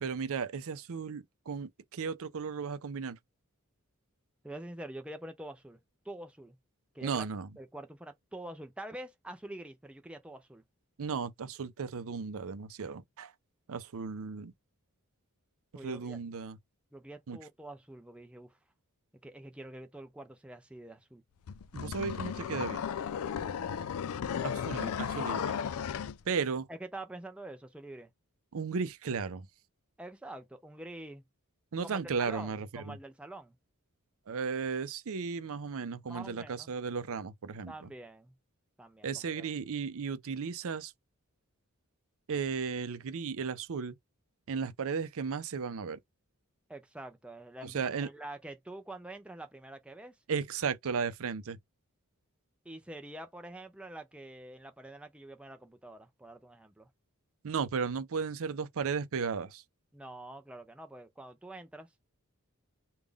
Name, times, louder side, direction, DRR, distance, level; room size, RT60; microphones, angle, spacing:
voice 1, 0.0-3.2 7.0-7.5 11.0-13.3 13.7-14.5 15.8-16.6 17.3-17.4 21.7-22.9 24.4-25.6 26.3-26.7 28.5-29.5 31.7-33.0 34.3-37.9 39.0-40.9 42.3-43.9 44.5-46.0 47.6-48.1 50.3-51.6 57.4-59.6, right 5 dB, 70° right, 0.5 m, -35 dB
voice 2, 4.4-6.6 6.9-7.2 7.6-10.6 15.7-16.2 16.9-18.6 19.2-21.2 24.4-24.6 26.7-28.1 30.0-31.2 31.8-33.6 36.1-36.7 37.7-38.4 38.8-39.5 46.7-50.2 52.6-56.9 59.9-61.9, right 1 dB, 5° right, 0.5 m, -46 dB
sound 1, 21.5-26.2, left 7 dB, 70° left, 0.4 m, -35 dB
3.6 x 2.3 x 3.4 m
head